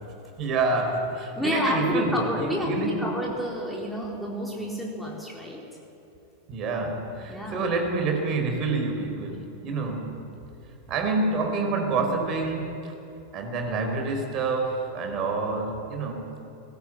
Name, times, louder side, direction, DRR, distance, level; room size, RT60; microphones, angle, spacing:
voice 1, 0.4-3.1 6.5-10.2 10.9-12.9 13.3-16.4, right 3 dB, 35° right, 3 dB, 4.8 m, -27 dB
voice 2, 1.4-5.6 7.3-7.6, left 1 dB, ahead, -4 dB, 4.1 m, -29 dB
21.5 x 18.5 x 9.4 m, 2.7 s
figure-of-eight pair, 90°, 0 cm